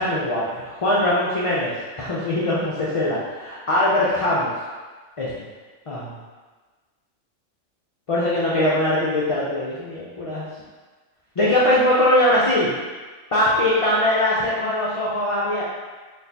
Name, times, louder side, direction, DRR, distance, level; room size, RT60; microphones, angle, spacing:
voice 1, 0.0-4.5 5.2-5.3 5.9-6.2 8.1-10.4 11.4-12.7 13.3-15.6, left 1 dB, 45° left, -7 dB, 0.4 m, -21 dB
4.1 x 3.2 x 2.8 m, 1.4 s
omnidirectional pair, 1.3 m